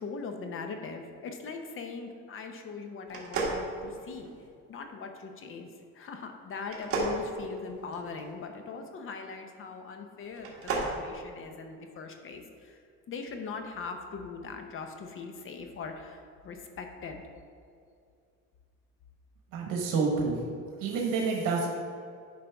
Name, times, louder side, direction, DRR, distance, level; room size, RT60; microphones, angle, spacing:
voice 1, 0.0-4.3 4.7-5.7 5.9-12.8 13.1-17.2, left 4 dB, 40° left, 5 dB, 0.8 m, -40 dB
sound 1, 3.1-4.5 6.6-8.2 10.3-11.0, right 3 dB, 45° right, 1.5 m, -33 dB
voice 2, 19.5-20.4 20.8-21.7, right 4 dB, 80° right, 0 dB, 1.1 m, -28 dB
10.0 x 5.1 x 3.4 m, 2.4 s
cardioid pair, 140°, 32 cm